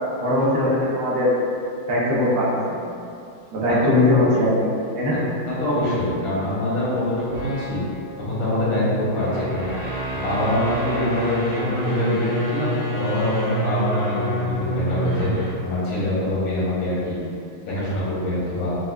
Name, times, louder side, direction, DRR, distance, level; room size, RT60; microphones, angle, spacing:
voice 1, 0.2-1.3 1.9-2.5 3.5-5.2, left 1 dB, 70° right, -7 dB, 1.5 m, -20 dB
voice 2, 5.5-7.8 8.2-9.7 10.1-17.2 17.6-18.8, left 1 dB, 85° left, -8 dB, 1.7 m, -24 dB
sound 1, 7.2-15.7, right 1 dB, 45° right, 0.9 m, -28 dB
4.7 x 2.2 x 2.3 m, 2.5 s
omnidirectional pair, 2.2 m